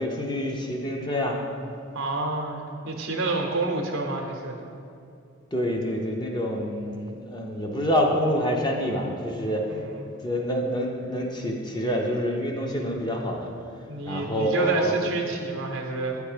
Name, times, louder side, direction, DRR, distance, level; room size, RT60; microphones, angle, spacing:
voice 1, 0.0-1.4 5.5-9.6 10.2-13.5 14.1-15.0, equal, 20° left, 1 dB, 0.6 m, -27 dB
voice 2, 1.9-4.6 9.7-10.1 13.9-16.2, right 3 dB, 85° right, 1 dB, 0.7 m, -29 dB
8.5 x 3.3 x 4.9 m, 2.6 s
head